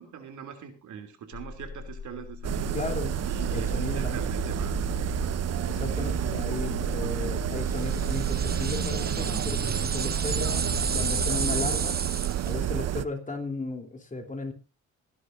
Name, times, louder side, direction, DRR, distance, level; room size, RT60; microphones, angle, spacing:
voice 1, 0.0-2.7 3.3-5.0, right 8 dB, 75° right, 6 dB, 2.9 m, -42 dB
sound 1, 1.3-11.7, left 5 dB, 55° left, 4.0 m, -37 dB
sound 2, 2.4-13.0, right 12 dB, 55° right, 0.8 m, -30 dB
voice 2, 2.7-3.2 3.5-4.3 5.7-10.7 10.9-12.1 12.4-14.5, left 3 dB, 25° left, 4 dB, 3.4 m, -35 dB
sound 3, 7.8-12.6, right 6 dB, 30° right, 1.1 m, -32 dB
24.5 x 10.5 x 2.7 m, 0.30 s
cardioid pair, 90°, 30 cm